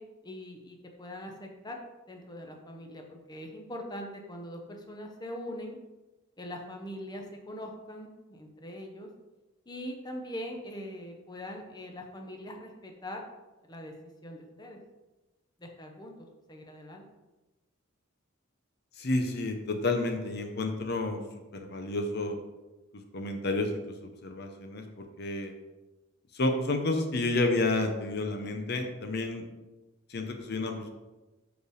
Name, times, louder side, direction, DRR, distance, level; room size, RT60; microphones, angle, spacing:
voice 1, 0.0-1.8 2.1-5.8 6.4-9.1 9.7-13.2 13.6-13.9 14.2-14.8 15.6-16.1 16.5-17.0, equal, 20° left, 2 dB, 0.8 m, -42 dB
voice 2, 19.0-21.2 21.5-22.4 23.1-25.5 26.3-29.4 30.1-30.9, left 2 dB, 50° left, 4 dB, 0.7 m, -30 dB
5.0 x 5.0 x 6.4 m, 1.1 s
head